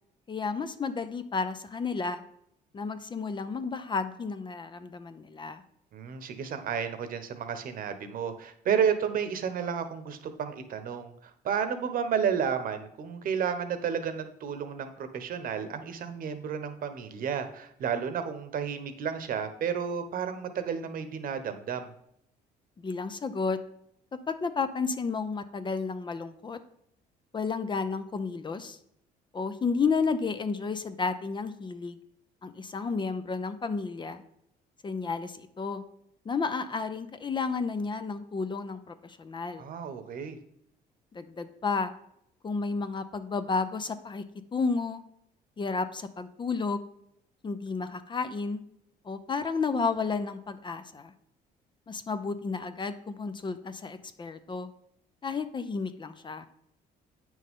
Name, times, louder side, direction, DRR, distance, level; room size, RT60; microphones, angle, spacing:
voice 1, 0.3-2.2 2.7-5.6 22.8-23.6 24.3-26.6 27.3-28.8 29.3-32.0 32.4-34.2 34.8-35.8 36.2-39.6 41.1-41.9 42.4-44.2 44.5-45.0 45.6-46.9 47.4-48.6 49.0-51.1 51.9-54.7 55.2-56.5, left 4 dB, 25° left, 10 dB, 0.7 m, -32 dB
voice 2, 5.9-11.1 11.4-21.9 39.6-40.4, right 7 dB, 55° right, 9 dB, 1.1 m, -31 dB
8.7 x 6.3 x 3.7 m, 0.74 s
cardioid pair, 110°, 17 cm